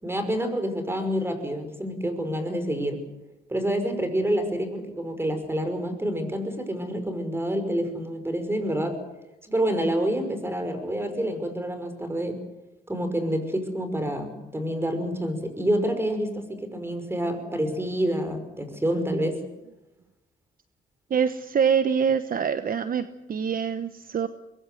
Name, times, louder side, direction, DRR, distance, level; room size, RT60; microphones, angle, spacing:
voice 1, 0.0-3.0 3.5-9.0 9.5-12.4 12.9-19.4, equal, 10° right, 8 dB, 5.7 m, -28 dB
voice 2, 21.1-24.3, right 7 dB, 45° right, 11 dB, 1.1 m, -25 dB
24.5 x 21.5 x 7.8 m, 0.99 s
cardioid pair, 90°, 20 cm